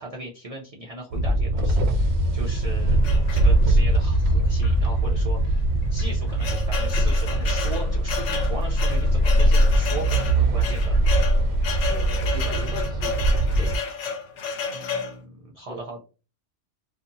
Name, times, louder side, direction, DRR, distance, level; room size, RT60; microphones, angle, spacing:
voice 1, 0.0-5.6 5.9-11.0 14.7-16.0, right 1 dB, 45° right, -2 dB, 0.5 m, -38 dB
Paisaje Sonoro - Coche en movimiento, 1.1-13.8, right 1 dB, 70° right, 0.8 m, -21 dB
sound 1, 3.0-3.9 4.6-4.8 5.0-5.1 5.8-15.2, left 5 dB, 85° left, 1.0 m, -32 dB
voice 2, 11.9-13.7 15.7-15.8, right 1 dB, 5° right, -1 dB, 0.7 m, -39 dB
2.7 x 2.5 x 2.6 m, 0.33 s
omnidirectional pair, 1.2 m